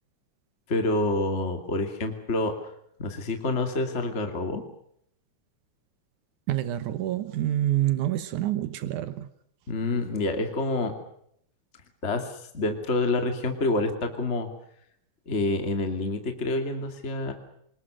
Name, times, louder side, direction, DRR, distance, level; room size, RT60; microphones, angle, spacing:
voice 1, 0.7-2.5 3.0-4.6 9.7-10.9 12.0-14.5 15.3-17.3, left 2 dB, 25° left, 5 dB, 2.6 m, -27 dB
voice 2, 6.5-9.3, right 13 dB, 80° right, 12 dB, 2.6 m, -27 dB
27.5 x 20.0 x 6.3 m, 0.71 s
omnidirectional pair, 3.4 m